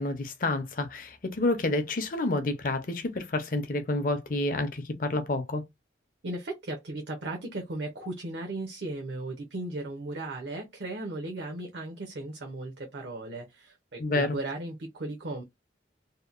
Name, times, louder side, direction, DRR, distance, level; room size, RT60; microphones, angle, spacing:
voice 1, 0.0-5.6 14.0-14.4, left 2 dB, 45° left, 0.5 m, -29 dB
voice 2, 6.2-15.4, right 2 dB, 70° right, 0.6 m, -36 dB
2.8 x 2.1 x 2.4 m
head